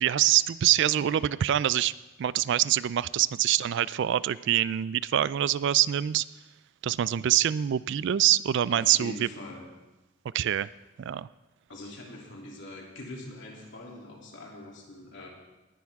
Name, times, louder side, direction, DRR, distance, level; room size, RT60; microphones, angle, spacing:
voice 1, 0.0-1.9 2.2-6.2 6.8-9.1 10.3-10.7 11.0-11.3, right 11 dB, 55° right, 18 dB, 0.3 m, -25 dB
voice 2, 8.7-9.7 11.7-15.3, left 1 dB, 60° left, -2 dB, 3.0 m, -43 dB
19.0 x 11.0 x 3.6 m, 1.1 s
head